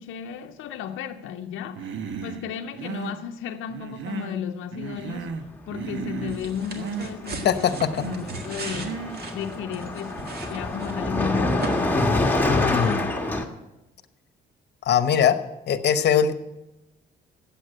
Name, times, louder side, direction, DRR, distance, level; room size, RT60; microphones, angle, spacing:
voice 1, 0.0-12.2, left 8 dB, 90° left, 0.6 m, -34 dB
Human voice, 1.8-2.4 2.7-3.2 3.7-4.4 4.7-5.5 5.7-6.4 6.7-7.1 7.7-8.3 8.8-9.2, right 6 dB, 75° right, 1.0 m, -34 dB
Car passing by, 6.0-6.2 6.4-13.4, left 2 dB, 10° left, 1.5 m, -27 dB
sound 1, 6.3-11.2 11.6-11.7, right 4 dB, 50° right, 1.7 m, -37 dB
voice 2, 7.4-7.9 12.5-13.1 14.8-15.4 15.7-16.3, left 8 dB, 55° left, 0.9 m, -21 dB
8.3 x 8.0 x 8.9 m
cardioid pair, 90°, 20 cm